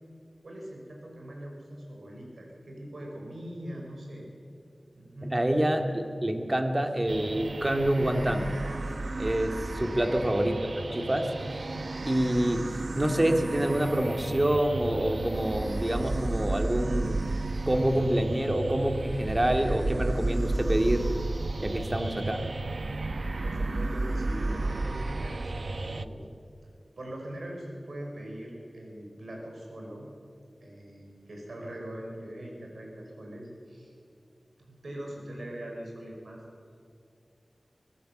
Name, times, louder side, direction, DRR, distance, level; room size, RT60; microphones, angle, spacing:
voice 1, 0.4-4.3 4.9-5.4 23.4-26.2 27.0-30.1 30.6-33.9 34.6-36.4, right 1 dB, 80° right, -1 dB, 6.1 m, -41 dB
voice 2, 5.2-8.6 9.1-11.3 12.1-12.7 13.0-17.3 17.7-21.1 21.6-22.4, right 1 dB, 25° right, 5 dB, 2.1 m, -27 dB
sound 1, 7.1-26.1, right 2 dB, 65° right, 0.8 m, -32 dB
24.0 x 19.0 x 7.7 m, 2.4 s
wide cardioid pair, 75°, 0 cm